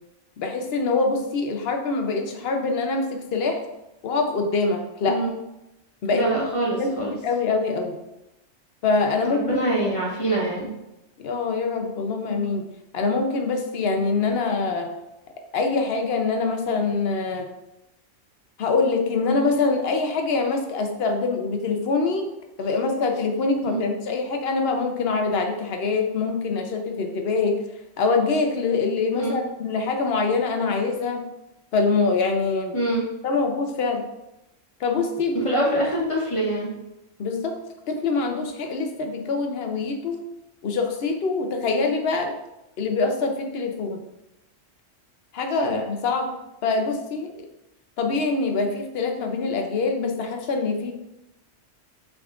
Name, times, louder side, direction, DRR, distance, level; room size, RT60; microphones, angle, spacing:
voice 1, 0.4-3.6 4.0-5.2 6.0-6.5 6.8-8.0 8.8-9.9 11.2-12.6 12.9-14.9 15.5-17.5 18.6-22.2 22.6-27.6 28.0-31.2 31.7-32.8 33.2-34.0 34.8-35.5 37.2-37.6 37.9-40.2 40.6-42.3 42.8-44.0 45.3-46.3 46.6-47.4 48.0-50.9, left 4 dB, 60° left, 4 dB, 0.8 m, -24 dB
voice 2, 6.1-7.1 9.2-10.7 23.6-23.8 29.1-29.4 32.7-33.0 35.4-36.7 45.6-45.7, right 1 dB, 25° left, -4 dB, 1.1 m, -25 dB
6.1 x 3.6 x 2.4 m, 0.92 s
omnidirectional pair, 1.3 m